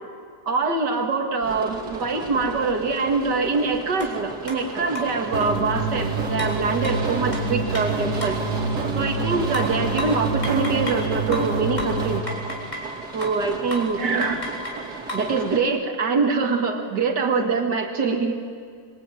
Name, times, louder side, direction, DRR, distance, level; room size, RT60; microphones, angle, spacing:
voice 1, 0.5-8.4 8.9-12.3 13.1-14.4 15.1-18.4, right 4 dB, 90° right, 4 dB, 2.5 m, -24 dB
sound 1, 1.4-15.6, right 4 dB, 75° right, 3.0 m, -35 dB
sound 2, 4.0-4.1 4.5-4.6 5.0-5.7 6.4-8.5 9.5-11.1 11.3-12.9 13.2-13.5 13.7-14.0 14.2-15.3, left 1 dB, 25° left, 4.2 m, -33 dB
sound 3, 5.3-12.2, right 3 dB, 50° right, 1.8 m, -27 dB
26.0 x 23.5 x 9.2 m, 2.2 s
omnidirectional pair, 1.8 m